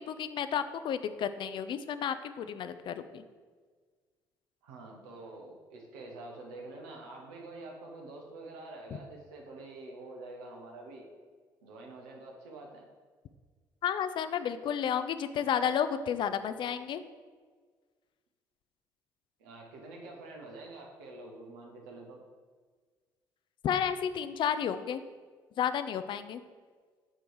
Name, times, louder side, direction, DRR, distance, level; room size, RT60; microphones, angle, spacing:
voice 1, 0.0-3.2 13.8-17.0 23.6-25.0 25.6-26.4, left 8 dB, 50° left, 11 dB, 0.4 m, -32 dB
voice 2, 4.6-11.1 11.6-12.8 19.4-22.2, right 2 dB, 80° right, 1 dB, 1.1 m, -47 dB
7.9 x 3.3 x 4.7 m, 1.5 s
hypercardioid pair, 50°, 10 cm